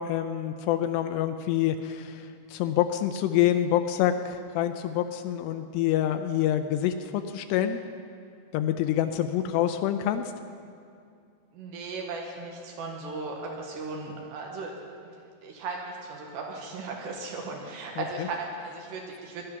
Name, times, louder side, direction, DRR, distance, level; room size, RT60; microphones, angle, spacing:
voice 1, 0.0-7.8 8.5-10.3 18.0-18.3, left 11 dB, 85° left, 8 dB, 2.6 m, -27 dB
voice 2, 11.5-14.7 15.4-19.4, right 3 dB, 75° right, 0 dB, 3.5 m, -36 dB
18.0 x 11.5 x 5.8 m, 2.4 s
omnidirectional pair, 5.0 m